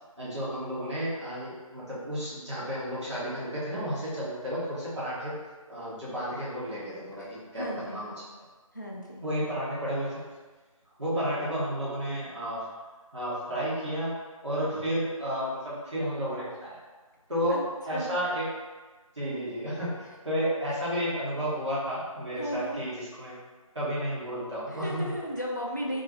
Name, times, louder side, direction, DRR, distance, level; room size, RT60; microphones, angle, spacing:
voice 1, 0.2-5.4 5.7-7.6 7.9-8.1 9.2-10.2 11.0-12.7 13.1-16.8 17.3-18.5 19.2-20.0 20.2-23.4 23.7-25.0, equal, 50° right, -10 dB, 1.5 m, -32 dB
voice 2, 7.2-8.0 8.7-9.2 17.5-17.6 17.9-18.2 20.7-20.8 22.4-22.8 24.7-26.0, equal, 30° left, -3 dB, 0.4 m, -35 dB
2.9 x 2.6 x 3.0 m, 1.3 s
figure-of-eight pair, 170°, 19 cm